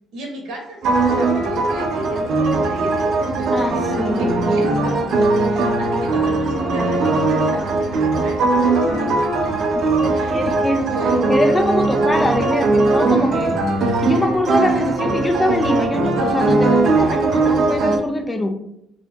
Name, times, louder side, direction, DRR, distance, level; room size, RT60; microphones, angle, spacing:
voice 1, 0.1-9.5 10.1-10.5 10.9-11.2 11.7-12.1, right 1 dB, 75° right, 1 dB, 1.1 m, -34 dB
sound 1, 0.8-18.0, right 3 dB, 55° right, 0.5 m, -19 dB
voice 2, 3.5-4.4 10.3-10.9 11.3-13.6 14.0-18.5, left 1 dB, 15° left, 5 dB, 0.4 m, -23 dB
2.8 x 2.6 x 3.3 m, 0.77 s
cardioid pair, 140°, 0 cm